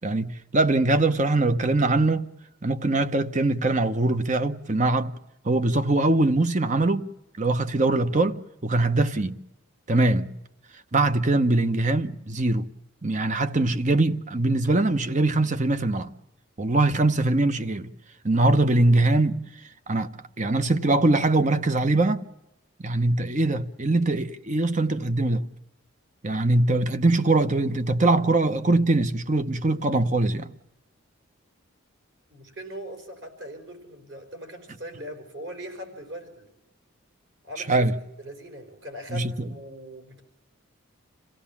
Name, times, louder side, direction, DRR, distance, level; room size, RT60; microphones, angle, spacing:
voice 1, 0.0-2.3 2.6-5.1 5.4-7.1 7.4-9.4 9.9-10.3 10.9-12.7 13.0-16.1 16.6-17.9 18.2-19.4 19.9-20.1 20.4-22.2 22.8-25.5 26.2-30.5 37.7-37.9 39.1-39.5, right 2 dB, 35° right, 0.8 m, -22 dB
voice 2, 32.3-36.5 37.5-37.9 38.2-40.2, right 1 dB, 55° right, 4.9 m, -40 dB
27.0 x 16.5 x 7.2 m
head